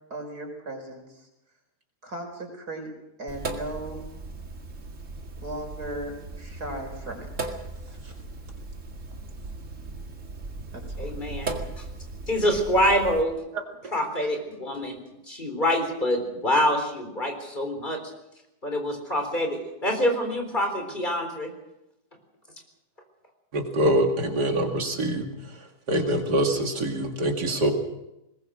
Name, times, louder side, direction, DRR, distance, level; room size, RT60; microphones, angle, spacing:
voice 1, 0.1-1.3 2.0-2.9 3.2-4.0 5.4-8.2 10.7-11.5, right 1 dB, 75° right, 4 dB, 5.1 m, -38 dB
Sink (filling or washing), 3.3-13.2, right 3 dB, 50° right, 2.5 m, -37 dB
voice 2, 11.0-11.8 12.3-13.4 13.9-15.0 15.3-18.0 18.6-21.5, equal, 30° left, 4 dB, 4.2 m, -26 dB
voice 3, 23.5-25.3 25.9-27.7, right 1 dB, 90° right, 3 dB, 2.9 m, -24 dB
21.5 x 20.5 x 6.4 m, 0.89 s
omnidirectional pair, 1.7 m